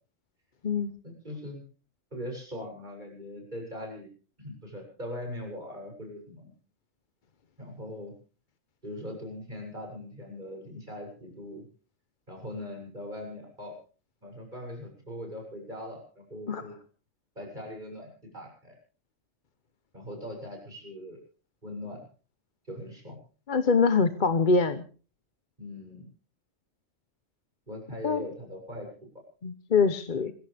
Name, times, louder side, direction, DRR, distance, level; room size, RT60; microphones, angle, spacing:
voice 1, 1.0-1.6 2.1-4.1 4.4-6.5 7.6-8.1 8.8-11.7 12.3-13.8 14.2-16.8 17.4-18.8 19.9-21.2 21.6-22.1 22.7-23.2 25.6-26.1 27.7-28.9 29.1-29.2, left 1 dB, 35° right, 1 dB, 7.7 m, -40 dB
voice 2, 23.5-24.8 28.0-28.2 29.4-30.3, left 4 dB, 40° left, 10 dB, 1.0 m, -24 dB
26.0 x 15.5 x 3.4 m, 0.38 s
omnidirectional pair, 1.3 m